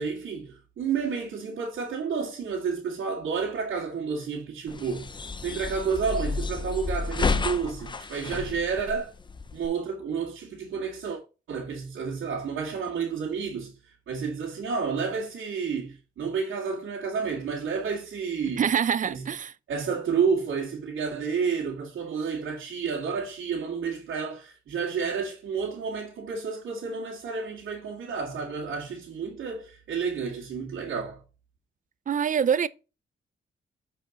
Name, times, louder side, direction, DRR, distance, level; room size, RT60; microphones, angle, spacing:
voice 1, 0.0-5.1 5.4-9.1 9.5-11.2 11.5-18.6 19.1-19.2 19.7-31.2, right 5 dB, 85° right, 2.2 m, -30 dB
sound 1, 4.7-9.7, left 4 dB, 25° left, 0.6 m, -31 dB
voice 2, 18.6-19.5 32.1-32.7, right 7 dB, 40° right, 0.5 m, -25 dB
7.2 x 5.0 x 3.8 m
wide cardioid pair, 135°, 20 cm